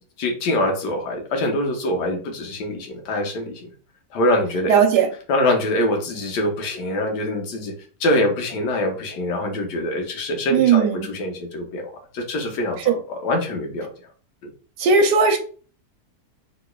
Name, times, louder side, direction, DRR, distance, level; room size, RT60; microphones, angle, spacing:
voice 1, 0.2-3.6 4.1-4.8 5.3-7.7 8.0-13.9, left 1 dB, 85° left, 1.4 m, -24 dB
voice 2, 4.7-5.1 10.5-11.1 14.8-15.4, right 5 dB, 85° right, 1.2 m, -17 dB
3.0 x 2.9 x 2.3 m
omnidirectional pair, 1.8 m